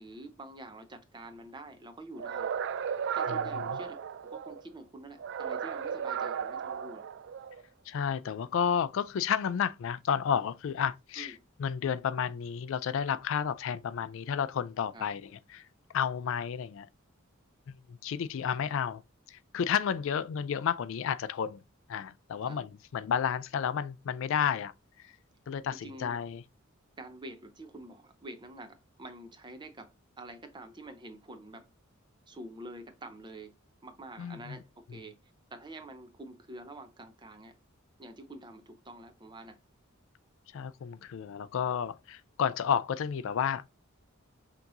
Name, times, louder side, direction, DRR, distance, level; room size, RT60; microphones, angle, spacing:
voice 1, 0.0-2.5 3.1-7.1 11.2-11.4 14.9-15.1 22.4-22.6 25.8-26.2 27.0-31.7 32.3-33.5 33.8-35.2 35.5-37.6 38.0-39.6, right 1 dB, 20° right, 0.6 m, -47 dB
sound 1, 2.2-4.6 5.2-7.6, right 7 dB, 60° right, 0.3 m, -35 dB
voice 2, 3.3-3.8 7.9-15.6 15.9-16.9 17.9-19.0 19.3-21.6 21.9-24.7 25.0-25.1 25.5-26.4 34.2-34.6 40.5-43.6, left 7 dB, 65° left, 0.3 m, -31 dB
5.8 x 2.9 x 2.6 m
head